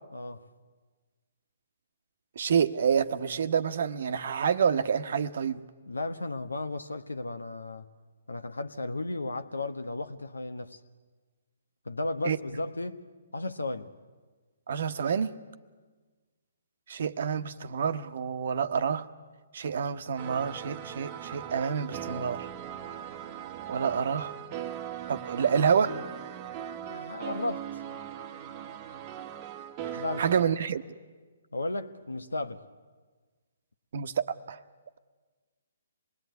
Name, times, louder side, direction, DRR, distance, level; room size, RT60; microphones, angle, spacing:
voice 1, 2.4-5.6 12.2-12.4 14.7-15.3 16.9-19.1 19.5-22.5 23.7-24.4 25.1-25.9 29.9-30.8 33.9-34.6, right 7 dB, 60° right, 1.1 m, -28 dB
voice 2, 5.9-7.8 8.3-10.8 11.8-13.0 13.3-13.9 26.9-27.8 30.0-30.5 31.5-32.6, left 2 dB, 85° left, 1.3 m, -34 dB
sound 1, 20.2-30.4, right 10 dB, 30° right, 1.1 m, -39 dB
26.0 x 20.5 x 9.4 m
figure-of-eight pair, 135°, 0 cm